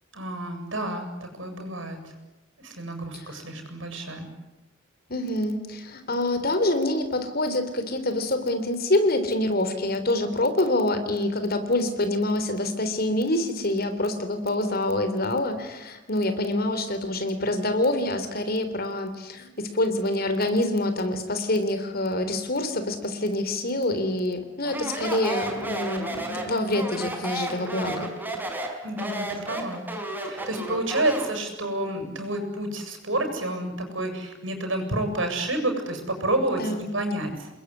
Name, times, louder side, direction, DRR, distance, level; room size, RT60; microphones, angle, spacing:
voice 1, 0.1-2.1 2.6-4.3 28.8-29.8 30.2-37.5, right 1 dB, 80° right, 6 dB, 7.7 m, -29 dB
voice 2, 5.1-28.1 36.6-36.9, left 1 dB, 50° left, 9 dB, 3.7 m, -26 dB
Speech, 24.6-31.4, right 1 dB, 10° right, 4.7 m, -32 dB
28.5 x 21.5 x 9.9 m, 1.0 s
head